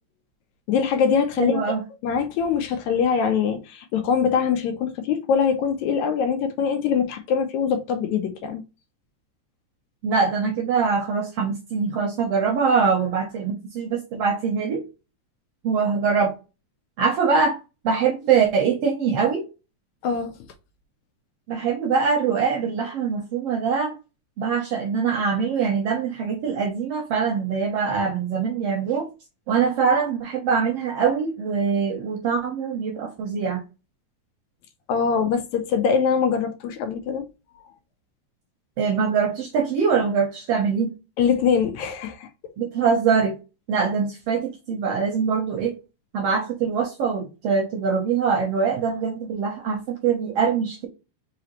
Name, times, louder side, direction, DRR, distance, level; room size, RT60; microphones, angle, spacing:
voice 1, 0.7-1.6 2.0-8.6 20.0-20.3 34.9-37.2 41.2-42.3, left 6 dB, 80° left, 1.9 m, -23 dB
voice 2, 1.4-1.8 10.0-14.8 15.6-16.4 17.0-17.6 17.8-19.4 21.5-23.9 24.4-29.1 29.5-33.6 38.8-40.9 42.6-43.4 43.7-45.7 46.1-50.9, right 6 dB, 70° right, 1.5 m, -23 dB
4.9 x 2.9 x 2.9 m
omnidirectional pair, 3.5 m